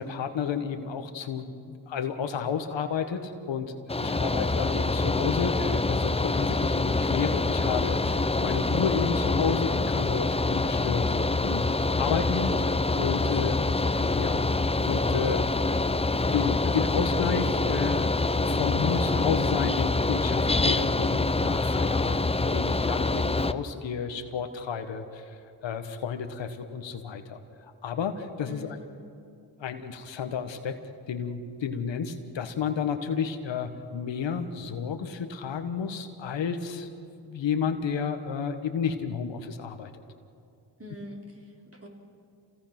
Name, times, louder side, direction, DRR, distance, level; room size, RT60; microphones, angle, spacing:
voice 1, 0.0-3.8 4.0-11.1 11.4-13.6 14.2-15.6 16.1-18.1 18.4-25.4 25.6-27.4 27.8-28.8 29.6-30.8 31.1-36.9 37.2-39.9, left 6 dB, 90° left, 7 dB, 1.4 m, -31 dB
Mechanical fan, 3.9-23.5, left 3 dB, 15° left, 0.7 m, -26 dB
voice 2, 4.0-4.4 28.4-28.9 40.8-41.9, left 1 dB, 35° right, 0 dB, 4.4 m, -44 dB
28.0 x 17.5 x 6.0 m, 2.5 s
cardioid pair, 50°, 43 cm